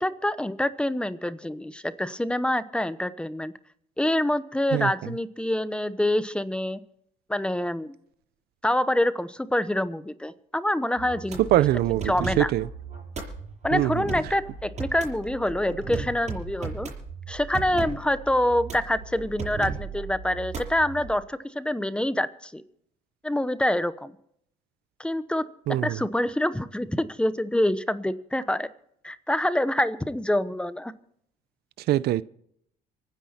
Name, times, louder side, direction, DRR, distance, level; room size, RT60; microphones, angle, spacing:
voice 1, 0.0-3.5 4.0-6.8 7.3-8.0 8.6-11.6 12.1-12.5 13.6-16.9 17.3-22.6 23.2-24.1 25.0-25.5 25.8-28.7 29.0-30.9, left 1 dB, 5° left, 0.9 m, -26 dB
sound 1, 11.0-21.1, right 5 dB, 40° right, 6.8 m, -36 dB
voice 2, 11.4-12.7 13.7-14.0 25.7-26.0 31.9-32.2, right 14 dB, 70° right, 0.6 m, -23 dB
25.0 x 9.7 x 4.4 m
cardioid pair, 110°, 17 cm